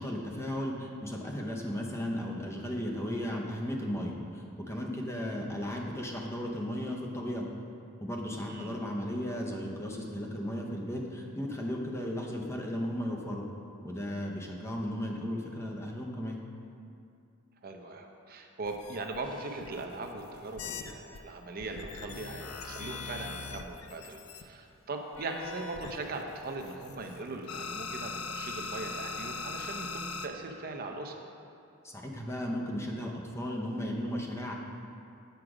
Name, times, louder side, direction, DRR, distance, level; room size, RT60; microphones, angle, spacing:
voice 1, 0.0-7.5 8.0-13.4 13.8-16.4 31.8-34.5, equal, 15° left, -1 dB, 0.7 m, -35 dB
voice 2, 8.5-8.8 17.6-31.2, right 2 dB, 45° right, 3 dB, 0.6 m, -40 dB
sound 1, 18.7-21.2 21.6-24.4 25.1-27.2 27.5-30.3, left 4 dB, 70° left, 0.5 m, -41 dB
8.0 x 4.9 x 4.9 m, 2.5 s
head